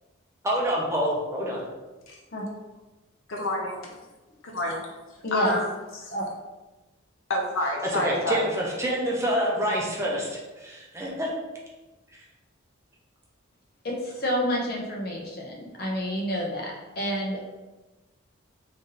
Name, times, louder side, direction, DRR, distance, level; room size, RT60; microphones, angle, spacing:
voice 1, 0.4-1.6 7.9-11.3 12.1-12.2, equal, 15° right, -3 dB, 0.6 m, -27 dB
voice 2, 3.3-3.9 4.5-4.8 5.3-5.7 5.9-6.1 7.3-8.5, left 1 dB, 80° left, 0 dB, 0.8 m, -28 dB
voice 3, 5.2-5.6 6.1-6.3 13.8-17.5, equal, 50° left, -1 dB, 0.8 m, -29 dB
3.6 x 2.7 x 3.8 m, 1.2 s
head